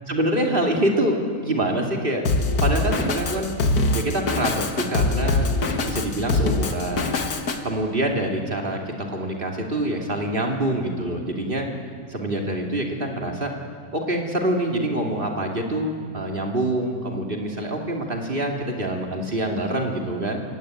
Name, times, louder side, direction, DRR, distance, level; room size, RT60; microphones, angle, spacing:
voice 1, 0.1-2.2 2.6-3.5 3.9-5.5 5.8-7.1 7.6-11.7 12.1-13.5 13.9-20.4, right 1 dB, 35° right, 2 dB, 2.8 m, -25 dB
Drum kit, 2.3-7.6, left 2 dB, 85° left, 2.0 m, -23 dB
27.5 x 16.5 x 9.1 m, 2.1 s
omnidirectional pair, 1.6 m